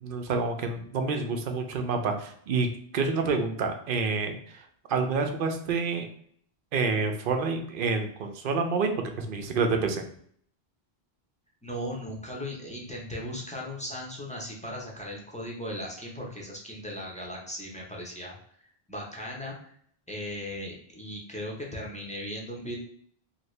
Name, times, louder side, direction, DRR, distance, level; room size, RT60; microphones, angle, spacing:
voice 1, 0.0-2.7 2.9-4.6 4.9-6.0 6.7-8.9 9.2-10.0, right 4 dB, 65° right, 5 dB, 0.7 m, -28 dB
voice 2, 11.6-18.4 18.9-19.7 20.1-22.8, equal, 10° left, -3 dB, 0.6 m, -37 dB
2.8 x 2.7 x 3.1 m, 0.62 s
omnidirectional pair, 1.0 m